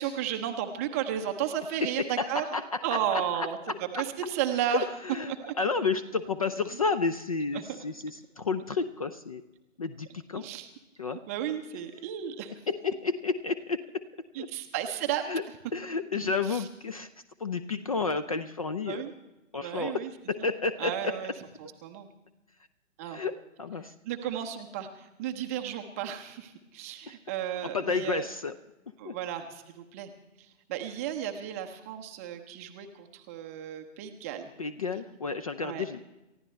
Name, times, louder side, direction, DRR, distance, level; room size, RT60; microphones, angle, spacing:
voice 1, 0.0-2.5 2.8-3.6 3.9-4.9 5.3-5.5 7.5-7.6 10.3-10.7 11.3-12.6 14.3-15.2 16.1-16.7 18.9-19.1 19.5-20.1 20.4-20.5 20.8-21.3 21.6-22.1 23.0-23.2 24.0-28.3 29.0-30.1 30.4-34.5 35.6-35.8, right 10 dB, 10° right, 4 dB, 0.7 m, -34 dB
voice 2, 2.0-3.5 4.7-9.4 9.8-10.5 11.0-11.2 12.7-14.0 14.4-14.5 15.3-15.4 15.7-17.1 17.4-19.0 19.5-20.0 20.3-21.1 23.0-23.9 27.7-28.5 29.0-29.1 34.6-36.0, left 4 dB, 30° left, 13 dB, 0.5 m, -31 dB
29.0 x 15.0 x 3.2 m, 1.0 s
figure-of-eight pair, 135°, 38 cm